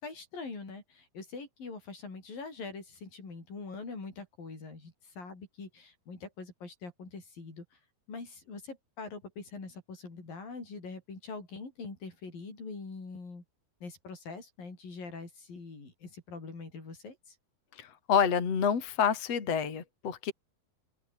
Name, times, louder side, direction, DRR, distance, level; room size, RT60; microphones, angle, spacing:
voice 1, 0.0-7.8 8.1-13.4 13.8-17.4, left 4 dB, 85° left, 9.2 m, -43 dB
voice 2, 17.8-20.3, left 7 dB, 50° left, 4.1 m, -28 dB
open air
omnidirectional pair, 3.9 m